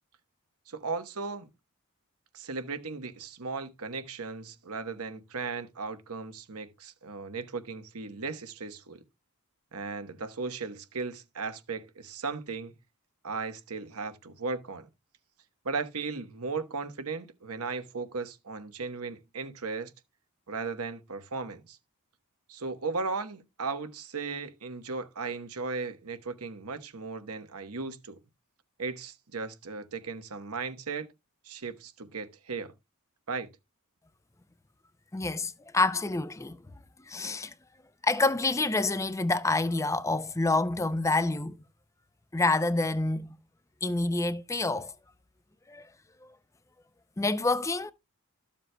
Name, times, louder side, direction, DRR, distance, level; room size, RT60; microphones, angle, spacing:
voice 1, 0.7-1.5 2.3-9.0 9.7-12.7 13.2-14.9 15.6-19.9 20.5-21.8 22.5-28.2 28.8-31.1 31.4-32.7 33.3-33.5, right 4 dB, 75° right, 1.1 m, -36 dB
voice 2, 35.1-36.6 37.1-37.5 38.0-41.6 42.3-43.4 43.8-44.9 45.7-45.9 46.2-46.3 47.2-47.9, left 2 dB, 15° left, 0.5 m, -27 dB
13.5 x 7.2 x 2.2 m
head